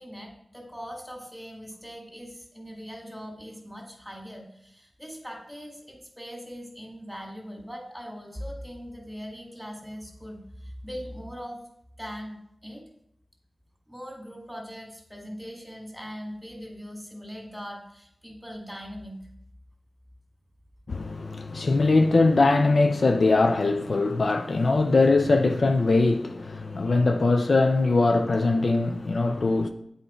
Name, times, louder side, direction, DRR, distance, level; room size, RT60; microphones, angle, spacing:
voice 1, 0.0-11.6 12.0-12.8 13.9-19.2 26.6-26.7, equal, ahead, 2.2 m, -40 dB
voice 2, 20.9-29.7, left 3 dB, 65° left, 0.5 m, -21 dB
7.8 x 4.3 x 4.4 m
cardioid pair, 40°, 0 cm